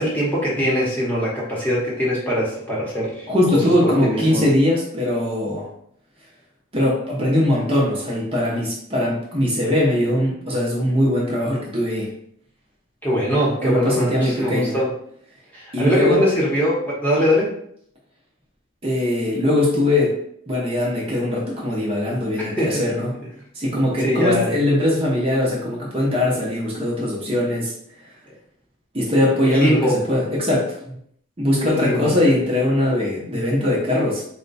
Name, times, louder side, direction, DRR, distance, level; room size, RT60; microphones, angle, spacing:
voice 1, 0.0-4.5 13.0-14.9 15.5-17.5 22.4-22.8 23.7-24.6 29.4-30.0 31.5-32.1, equal, 10° left, -5 dB, 1.0 m, -22 dB
voice 2, 3.3-5.7 6.7-12.1 13.6-14.8 15.7-16.2 18.8-20.2 20.5-23.1 23.5-27.7 28.9-30.8 31.4-34.2, left 1 dB, 25° right, -4 dB, 0.8 m, -21 dB
4.2 x 2.2 x 4.0 m, 0.68 s
head